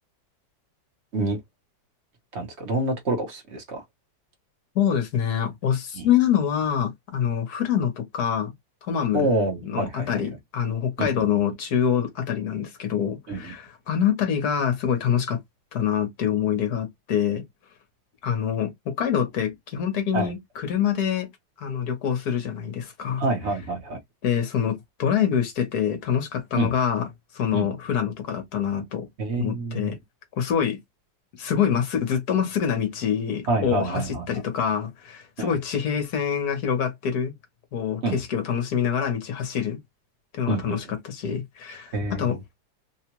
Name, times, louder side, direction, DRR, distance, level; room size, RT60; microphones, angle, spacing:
voice 1, 2.3-3.8 5.9-6.1 9.1-10.2 11.0-11.2 13.3-13.5 20.1-20.3 23.2-24.0 26.5-26.7 27.5-27.7 29.2-30.0 33.5-34.2 35.4-35.5 38.0-38.2 40.5-40.8 41.9-42.4, right 2 dB, 40° right, 1.2 m, -27 dB
voice 2, 4.7-8.5 8.9-9.3 9.6-15.4 15.7-17.4 18.2-21.3 21.6-23.2 24.2-27.1 27.3-29.1 29.3-30.0 30.4-30.8 31.4-37.3 37.7-39.8 40.3-42.4, left 8 dB, 60° left, 1.5 m, -25 dB
3.7 x 2.4 x 2.9 m
omnidirectional pair, 2.0 m